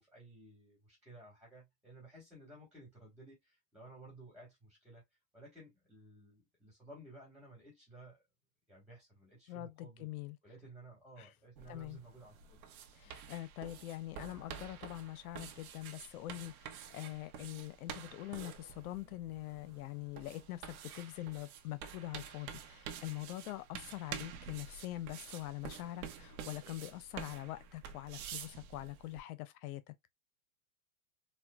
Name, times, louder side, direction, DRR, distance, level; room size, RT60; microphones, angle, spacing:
voice 1, 0.0-5.0 5.3-8.2 8.7-10.1 10.4-12.7, right 2 dB, ahead, 1.6 m, -55 dB
voice 2, 9.5-10.4 11.2-11.3 11.7-12.0 12.9-29.9, left 16 dB, 80° left, 0.6 m, -44 dB
sound 1, 11.6-29.2, right 8 dB, 80° right, 0.9 m, -49 dB
4.3 x 2.2 x 2.3 m
supercardioid pair, 125°, 42 cm